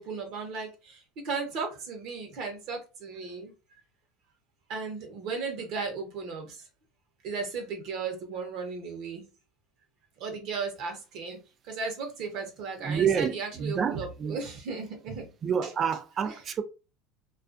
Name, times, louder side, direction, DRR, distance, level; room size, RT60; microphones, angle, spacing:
voice 1, 0.0-3.5 4.7-6.6 7.2-9.3 10.2-11.4 11.6-15.3 15.6-15.7 16.2-16.4, right 4 dB, 60° right, 0.8 m, -35 dB
voice 2, 12.8-14.4 15.4-16.6, right 7 dB, 40° right, 0.4 m, -28 dB
2.4 x 2.3 x 2.4 m
supercardioid pair, 100°, 0 cm